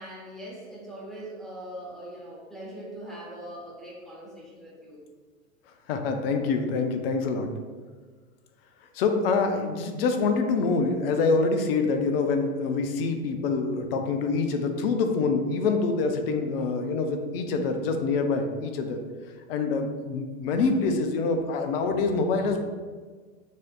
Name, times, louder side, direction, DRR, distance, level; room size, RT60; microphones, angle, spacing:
voice 1, 0.0-5.0, right 1 dB, ahead, -5 dB, 1.0 m, -41 dB
voice 2, 5.9-7.5 8.9-19.0 19.5-22.6, left 4 dB, 45° left, 6 dB, 0.6 m, -25 dB
6.3 x 2.6 x 2.3 m, 1.5 s
figure-of-eight pair, 100°, 41 cm